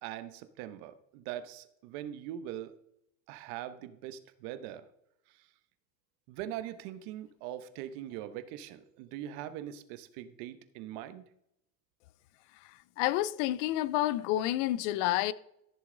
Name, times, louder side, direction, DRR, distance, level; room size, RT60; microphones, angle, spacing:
voice 1, 0.0-2.8 3.3-4.9 5.3-5.5 6.3-11.2, right 11 dB, 55° right, 1.1 m, -42 dB
voice 2, 13.0-15.3, left 14 dB, 60° left, 0.6 m, -29 dB
14.5 x 6.9 x 3.9 m
supercardioid pair, 140°, 41 cm